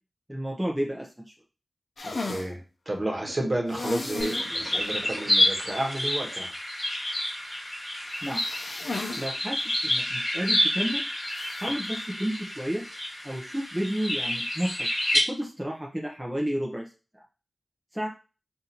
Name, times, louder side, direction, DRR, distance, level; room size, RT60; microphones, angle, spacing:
voice 1, 0.3-1.3 8.2-8.4 9.2-11.1 11.6-12.8 13.2-14.9 15.3-16.9 17.9-18.1, equal, 10° right, -2 dB, 0.6 m, -31 dB
sound 1, 2.0-2.5 3.7-4.5 4.8-4.9 5.3-5.4 8.1-9.3 9.6-9.7 11.3-11.7, left 3 dB, 70° left, 0.6 m, -34 dB
voice 2, 2.0-2.6 2.9-6.5, right 1 dB, 35° right, 0 dB, 1.1 m, -31 dB
sound 2, 3.2-5.4, right 3 dB, 85° right, 1.0 m, -43 dB
sound 3, 4.2-15.2, left 1 dB, 25° left, 2.2 m, -29 dB
5.2 x 2.6 x 2.9 m, 0.33 s
wide cardioid pair, 90°, 0 cm